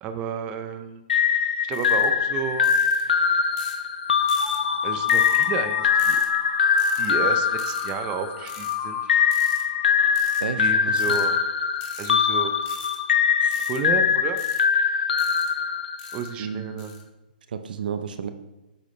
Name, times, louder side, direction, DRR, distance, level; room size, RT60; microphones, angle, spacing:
voice 1, 0.0-1.0 1.7-2.7 4.8-6.2 7.0-9.0 10.6-11.3 12.0-12.5 13.7-14.4 16.1-16.9, right 6 dB, 25° right, 7 dB, 0.7 m, -31 dB
sound 1, 1.1-8.5 9.1-16.3, left 7 dB, 70° left, 0.6 m, -22 dB
sound 2, 1.7-2.1 2.6-3.0 3.6-3.8 4.3-4.6 5.1-5.5 6.0-6.3 6.8-7.1 7.6-7.9 8.5-8.8 9.3-9.6 10.2-10.5 11.0-11.3 11.8-12.1 12.6-13.0 13.5-13.8 14.4-14.6 15.2-15.5 16.0-16.3 16.8-17.0, left 7 dB, 30° left, 1.4 m, -43 dB
sound 3, 4.4-11.2, left 8 dB, 15° left, 1.3 m, -34 dB
voice 2, 10.4-11.2 13.4-13.6 16.4-17.0 17.5-18.3, right 7 dB, 65° right, 9 dB, 0.7 m, -33 dB
8.4 x 6.1 x 3.3 m, 1.0 s
hypercardioid pair, 145°, 5 cm